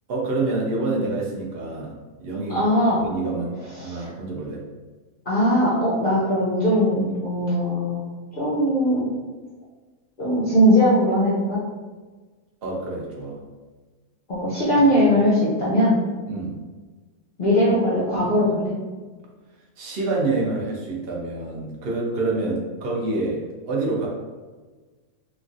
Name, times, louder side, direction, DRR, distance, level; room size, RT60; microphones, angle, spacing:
voice 1, 0.1-2.6 3.0-4.6 12.6-13.4 16.3-16.5 19.8-24.1, right 2 dB, 60° right, -2 dB, 0.6 m, -27 dB
voice 2, 2.5-3.0 3.8-4.1 5.3-8.0 8.3-9.1 10.2-11.6 14.3-16.0 17.4-18.7, equal, 55° left, -8 dB, 0.6 m, -20 dB
3.1 x 2.3 x 2.5 m, 1.3 s
omnidirectional pair, 1.6 m